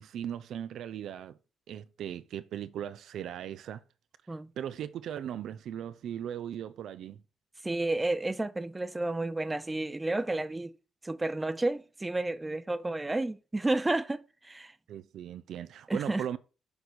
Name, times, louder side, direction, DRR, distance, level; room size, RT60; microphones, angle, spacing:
voice 1, 0.0-1.4 1.7-3.8 4.6-7.2 14.9-16.4, right 10 dB, 75° right, 0.5 m, -38 dB
voice 2, 7.6-10.7 11.0-14.7 15.9-16.2, right 2 dB, 15° right, 0.7 m, -31 dB
7.0 x 4.0 x 6.3 m
cardioid pair, 90°, 0 cm